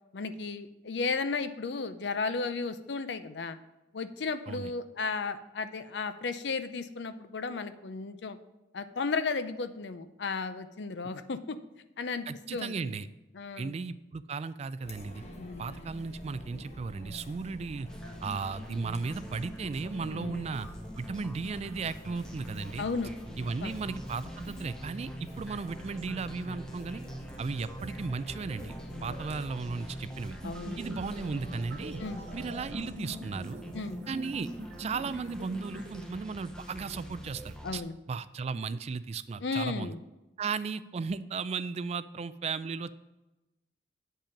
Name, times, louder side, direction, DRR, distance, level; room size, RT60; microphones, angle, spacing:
voice 1, 0.1-3.6 3.9-8.4 8.7-11.6 12.0-12.3 12.5-12.7 13.3-13.7 15.4-15.9 20.1-20.5 22.8-23.1 23.6-23.8 28.9-29.2 30.4-30.8 32.0-32.2 33.7-34.0 37.6-38.0 39.4-40.0, left 4 dB, 70° left, 11 dB, 0.6 m, -34 dB
voice 2, 12.3-13.1 13.6-15.2 15.6-17.9 18.2-20.7 21.0-22.9 23.4-27.0 27.4-28.8 29.0-30.4 30.8-32.0 32.3-33.6 34.1-34.5 34.8-37.8 38.1-39.9 40.4-42.9, right 4 dB, 35° right, 15 dB, 0.3 m, -35 dB
Chatter, 14.8-32.7, left 1 dB, 35° left, 1.1 m, -46 dB
sound 1, 17.9-37.8, equal, 5° left, 0.8 m, -45 dB
sound 2, 30.4-36.0, equal, 65° right, 1.5 m, -43 dB
8.7 x 5.5 x 5.2 m, 1.0 s
head